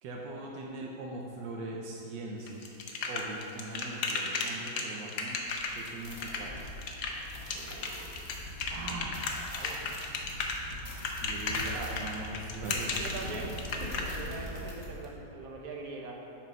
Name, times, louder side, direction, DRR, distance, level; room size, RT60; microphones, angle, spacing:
voice 1, 0.0-2.7 3.1-5.4 5.7-6.7 7.5-8.2 11.2-12.9, right 2 dB, 75° right, -2 dB, 1.4 m, -41 dB
sound 1, 2.5-14.0, left 4 dB, 65° left, 1.2 m, -34 dB
sound 2, 5.4-15.1, left 1 dB, 30° left, 1.1 m, -42 dB
voice 2, 8.7-10.0 13.0-16.2, right 3 dB, 55° right, 0 dB, 1.3 m, -42 dB
7.7 x 5.3 x 5.4 m, 2.8 s
omnidirectional pair, 2.0 m